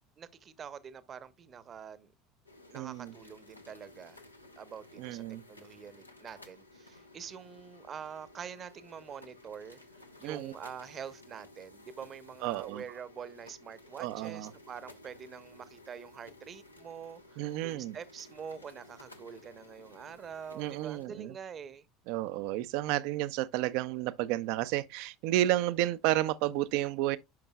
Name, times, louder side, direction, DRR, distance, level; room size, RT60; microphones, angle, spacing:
voice 1, 0.2-2.1 2.7-4.2 4.6-5.2 5.5-9.8 10.2-21.9 25.4-25.5, right 7 dB, 35° right, 0.8 m, -46 dB
sound 1, 2.5-21.1, left 2 dB, 90° left, 0.8 m, -55 dB
voice 2, 2.7-3.1 5.0-5.4 10.2-10.5 12.4-12.8 14.0-14.5 17.4-18.0 20.6-21.3 22.1-27.2, right 15 dB, 55° right, 0.5 m, -31 dB
10.5 x 5.3 x 2.3 m
figure-of-eight pair, 70°, 0 cm